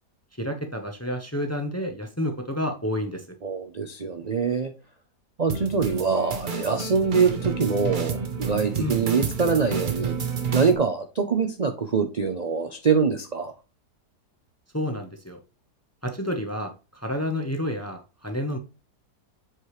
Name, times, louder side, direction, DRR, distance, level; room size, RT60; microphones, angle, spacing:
voice 1, 0.4-3.3 8.8-9.0 14.7-15.4 16.0-18.6, left 1 dB, 15° left, 5 dB, 0.6 m, -30 dB
voice 2, 3.4-4.7 5.4-10.1 10.5-13.5, right 5 dB, 55° right, 6 dB, 0.4 m, -24 dB
sound 1, 5.5-10.7, right 6 dB, 40° right, 0.9 m, -30 dB
7.9 x 4.8 x 3.1 m, 0.31 s
omnidirectional pair, 1.7 m